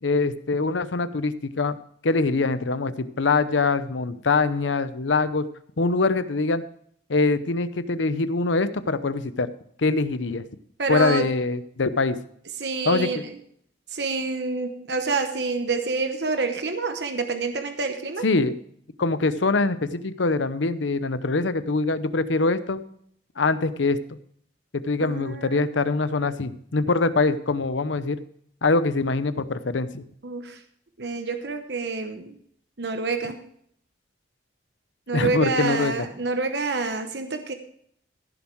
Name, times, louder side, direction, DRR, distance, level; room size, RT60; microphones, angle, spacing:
voice 1, 0.0-1.8 2.0-5.5 5.8-6.6 7.1-9.5 9.8-10.4 10.9-12.2 12.9-13.1 18.2-18.6 19.0-22.8 23.4-24.0 24.8-28.2 28.6-30.0 35.1-35.9, left 3 dB, 85° left, 13 dB, 0.8 m, -23 dB
voice 2, 10.8-11.3 12.6-13.3 13.9-18.2 25.0-25.9 30.2-30.6 31.0-32.3 32.8-33.4 35.1-37.5, right 3 dB, 65° right, 7 dB, 1.0 m, -27 dB
15.5 x 7.2 x 4.6 m, 0.65 s
head